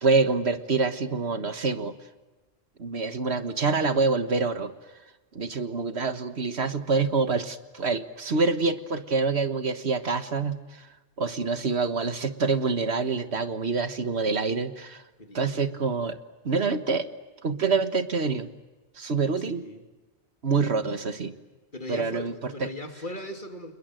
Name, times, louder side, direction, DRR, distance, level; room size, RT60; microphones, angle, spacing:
voice 1, 0.0-1.9 2.8-4.7 5.3-10.9 11.2-15.0 15.3-16.2 16.5-17.1 17.4-18.5 19.0-19.7 20.4-21.3 21.9-22.7, right 4 dB, 70° right, 10 dB, 1.7 m, -26 dB
voice 2, 15.2-15.7 19.4-19.8 21.7-23.7, left 1 dB, 45° left, 5 dB, 3.0 m, -39 dB
29.0 x 21.5 x 9.1 m, 1.2 s
omnidirectional pair, 1.1 m